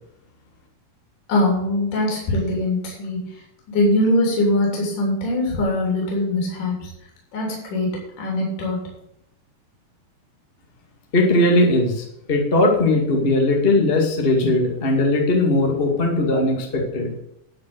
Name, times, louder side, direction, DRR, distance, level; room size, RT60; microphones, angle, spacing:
voice 1, 1.3-3.2 3.7-6.9 7.3-8.8, left 1 dB, 50° left, -2 dB, 4.4 m, -22 dB
voice 2, 11.1-17.1, left 2 dB, 30° left, 0 dB, 1.1 m, -19 dB
11.5 x 5.4 x 8.0 m, 0.78 s
omnidirectional pair, 4.8 m